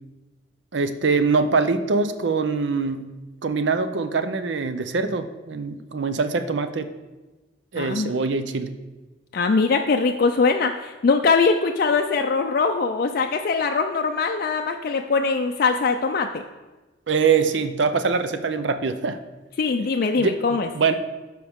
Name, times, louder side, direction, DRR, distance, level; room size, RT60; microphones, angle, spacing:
voice 1, 0.7-3.1 3.4-6.9 7.7-8.7 17.1-19.2 20.1-21.0, right 4 dB, 75° right, 10 dB, 0.6 m, -23 dB
voice 2, 7.7-8.1 9.3-16.4 19.6-20.7, left 4 dB, 50° left, 4 dB, 0.4 m, -22 dB
12.5 x 4.7 x 3.5 m, 1.2 s
head